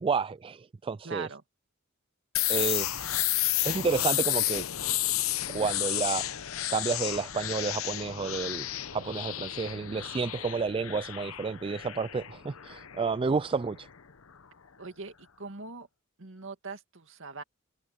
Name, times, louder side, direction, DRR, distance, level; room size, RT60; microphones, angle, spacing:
voice 1, 0.0-1.3 2.5-3.1 3.6-4.6 5.5-6.3 6.7-8.7 8.9-13.9, right 5 dB, 25° right, 0.3 m, -30 dB
voice 2, 1.0-1.4 14.8-15.9 16.2-17.4, right 4 dB, 65° right, 2.3 m, -41 dB
sound 1, 2.3-14.0, left 14 dB, 80° left, 0.9 m, -32 dB
head